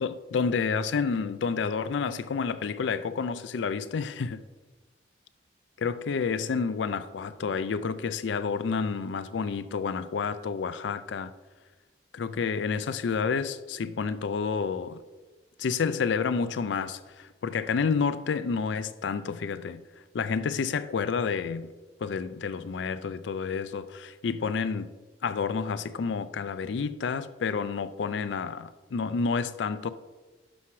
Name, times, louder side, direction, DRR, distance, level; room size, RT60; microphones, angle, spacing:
voice 1, 0.0-4.4 5.8-11.3 12.1-15.0 15.6-19.8 20.1-21.7 22.0-24.9 25.2-29.9, left 5 dB, 85° left, 0.4 m, -29 dB
11.5 x 5.7 x 3.1 m
head